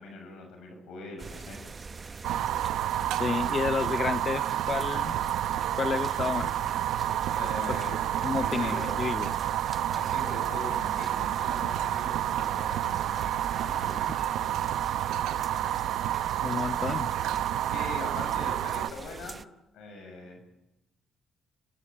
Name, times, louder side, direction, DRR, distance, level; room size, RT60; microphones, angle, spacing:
voice 1, 0.0-1.6 7.3-8.0 8.3-9.0 9.9-14.0 17.6-19.4 19.7-20.4, left 2 dB, 80° left, 7.4 m, -42 dB
sound 1, 1.2-19.4, right 4 dB, 35° right, 0.9 m, -44 dB
Fire, 2.2-18.9, right 12 dB, 85° right, 0.8 m, -29 dB
voice 2, 3.2-5.2 5.7-6.5 7.7-7.8 8.2-9.3 15.6-15.7 16.4-17.1, left 5 dB, 40° left, 0.9 m, -31 dB
29.5 x 15.5 x 8.7 m
cardioid pair, 90°, 0 cm